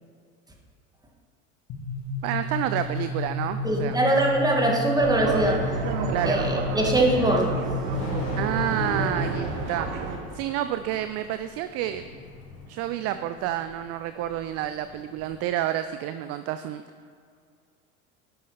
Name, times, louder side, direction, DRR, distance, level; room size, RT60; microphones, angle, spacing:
sound 1, 1.7-9.3, left 2 dB, 55° left, 2.3 m, -31 dB
Thunder / Rain, 1.9-15.4, left 3 dB, 70° left, 1.5 m, -42 dB
voice 1, 2.2-4.0 6.1-6.4 8.4-9.9 10.3-12.1 12.7-16.8, right 12 dB, 40° right, 10 dB, 0.4 m, -29 dB
voice 2, 3.6-5.8 6.2-7.6, right 1 dB, 10° right, -1 dB, 1.9 m, -23 dB
sound 2, 5.0-10.2, right 5 dB, 65° right, 1.3 m, -31 dB
11.0 x 6.8 x 4.1 m, 2.3 s
figure-of-eight pair, 75°, 43 cm